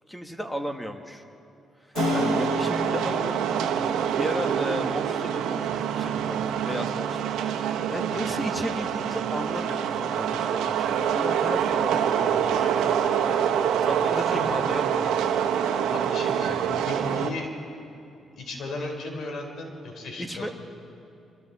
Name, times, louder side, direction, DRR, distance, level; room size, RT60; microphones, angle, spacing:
voice 1, 0.1-1.2 1.8-3.4 4.2-15.4 20.2-20.5, equal, 5° left, 5 dB, 1.7 m, -35 dB
Keyboard (musical), 1.9-10.5, left 6 dB, 85° left, 1.0 m, -37 dB
sound 1, 2.0-17.3, right 8 dB, 90° right, 1.1 m, -26 dB
voice 2, 8.1-8.4 12.2-12.6 14.2-14.5 15.9-17.5 18.4-20.5, left 2 dB, 65° left, 2 dB, 4.2 m, -36 dB
26.5 x 25.5 x 4.3 m, 2.6 s
cardioid pair, 90°, 0 cm